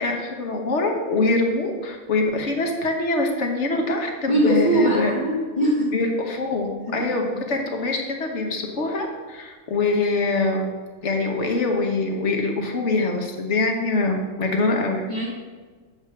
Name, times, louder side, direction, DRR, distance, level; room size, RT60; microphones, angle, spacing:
voice 1, 0.0-5.1 5.9-10.7 11.0-15.0, left 3 dB, 60° left, 2 dB, 1.3 m, -24 dB
voice 2, 4.3-5.9 6.9-7.0 7.3-7.4 15.1-15.3, right 1 dB, 35° left, -5 dB, 1.2 m, -21 dB
7.9 x 3.5 x 6.5 m, 1.4 s
omnidirectional pair, 1.4 m